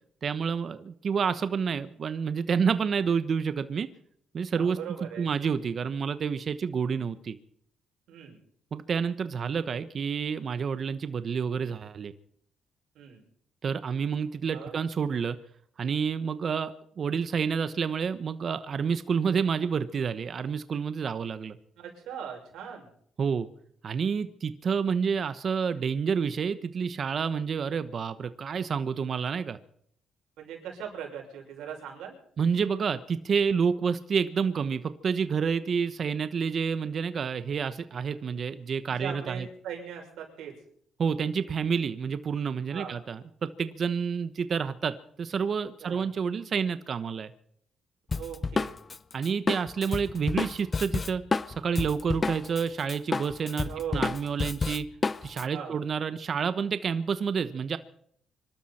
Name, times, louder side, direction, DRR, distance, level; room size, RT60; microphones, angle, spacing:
voice 1, 0.2-3.9 4.3-4.8 5.2-7.4 8.7-12.1 13.6-15.4 15.8-21.6 23.2-23.5 23.8-29.6 32.4-39.5 41.0-47.3 49.1-51.2 51.6-54.9 55.2-57.8, right 6 dB, 50° right, 12 dB, 1.1 m, -29 dB
voice 2, 4.6-5.3 8.1-8.4 12.9-13.2 14.4-14.8 21.8-22.9 30.4-32.2 39.0-40.6 42.7-43.0 45.8-46.1 48.1-48.8 53.6-54.1 55.4-55.8, right 8 dB, 85° right, 1 dB, 6.1 m, -40 dB
Drum kit, 48.1-52.6 52.9-55.4, left 4 dB, 30° left, 0.7 m, -30 dB
25.5 x 12.5 x 4.4 m, 0.64 s
cardioid pair, 90°, 0 cm